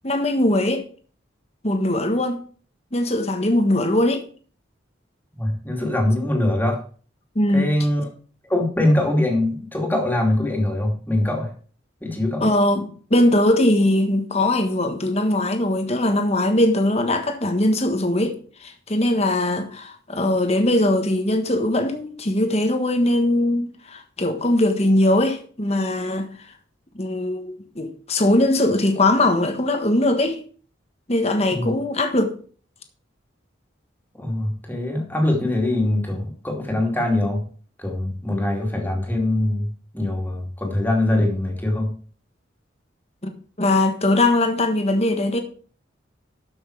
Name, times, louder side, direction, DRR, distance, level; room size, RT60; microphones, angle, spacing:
voice 1, 0.0-0.8 1.6-2.4 2.9-4.2 7.3-7.7 12.4-26.3 26.9-30.4 31.1-32.3 43.2-43.3 43.6-45.4, left 1 dB, 35° left, 1.4 m, -20 dB
voice 2, 5.4-6.8 7.5-8.1 8.5-11.5 12.0-12.5 31.5-31.7 34.2-37.4 37.8-41.9, left 1 dB, 10° left, 2.6 m, -22 dB
13.0 x 6.4 x 4.7 m
head